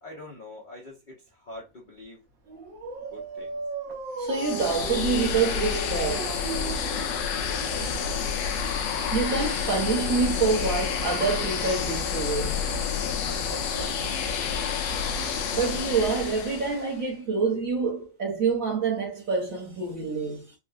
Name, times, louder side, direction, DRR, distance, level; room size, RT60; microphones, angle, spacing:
voice 1, 0.0-2.2 3.1-3.6 7.4-7.9 13.3-14.3, left 2 dB, 45° left, 0.6 m, -44 dB
Dog, 2.5-8.1, right 3 dB, 80° right, 1.6 m, -37 dB
voice 2, 4.2-7.0 8.5-13.0 15.5-20.5, right 5 dB, 50° right, 1.4 m, -27 dB
sound 1, 4.3-16.9, left 6 dB, 85° left, 1.3 m, -29 dB
4.2 x 2.3 x 2.4 m
omnidirectional pair, 2.0 m